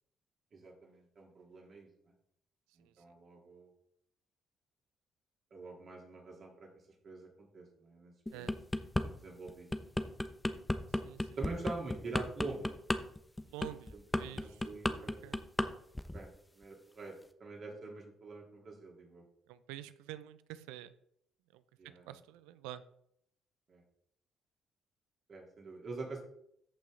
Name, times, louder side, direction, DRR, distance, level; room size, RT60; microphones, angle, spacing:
voice 1, 0.5-1.9 2.8-3.7 5.5-6.7 7.0-8.6 9.0-9.9 11.4-12.7 13.9-15.2 16.1-19.2 21.8-22.2 23.7-23.8 25.3-26.2, right 3 dB, 50° right, -1 dB, 3.7 m, -46 dB
sound 1, 8.3-9.1 9.5-15.7 15.9-16.2, left 1 dB, 10° left, 1.0 m, -33 dB
voice 2, 13.4-14.7 14.9-15.4 19.5-20.9 21.5-21.6 22.1-22.8, right 13 dB, 80° right, 14 dB, 0.6 m, -48 dB
14.0 x 5.7 x 3.9 m, 0.71 s
hypercardioid pair, 50°, 0 cm